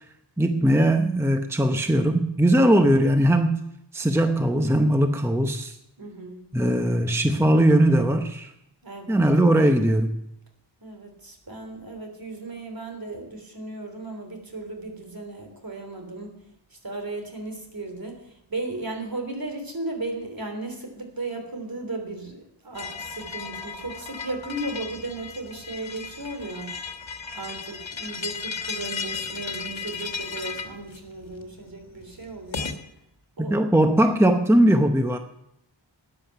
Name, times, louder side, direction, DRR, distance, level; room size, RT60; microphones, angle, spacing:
voice 1, 0.4-3.6 3.9-5.7 6.5-8.5 9.1-10.1 33.4-35.2, right 1 dB, 5° right, 6 dB, 0.8 m, -20 dB
voice 2, 6.0-6.4 8.8-9.2 10.8-16.4 16.7-27.0 27.3-32.7 33.4-33.6, right 2 dB, 50° right, 4 dB, 3.3 m, -35 dB
sound 1, 22.7-32.8, left 5 dB, 85° left, 1.4 m, -35 dB
13.5 x 9.8 x 5.8 m, 0.81 s
wide cardioid pair, 80°, 45 cm